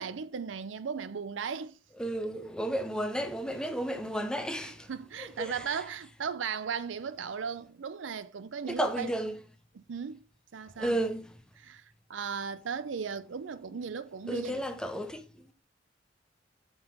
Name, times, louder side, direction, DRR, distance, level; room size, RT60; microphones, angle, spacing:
voice 1, 0.0-1.8 4.5-9.1 9.7-10.3 10.5-11.0 11.6-14.6, right 6 dB, 85° right, 0.5 m, -37 dB
voice 2, 2.0-4.9 5.2-5.5 8.8-9.4 10.8-11.3 14.3-15.2, right 1 dB, 5° left, 0.8 m, -32 dB
7.7 x 4.7 x 5.4 m
head